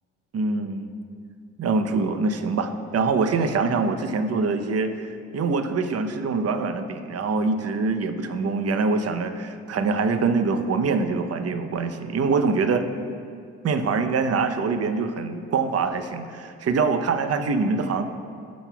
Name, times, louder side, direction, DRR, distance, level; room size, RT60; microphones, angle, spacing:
voice 1, 0.3-0.9 1.6-12.8 13.6-18.0, right 4 dB, 45° right, 8 dB, 0.9 m, -24 dB
18.5 x 6.3 x 2.4 m, 2.2 s
supercardioid pair, 55°, 34 cm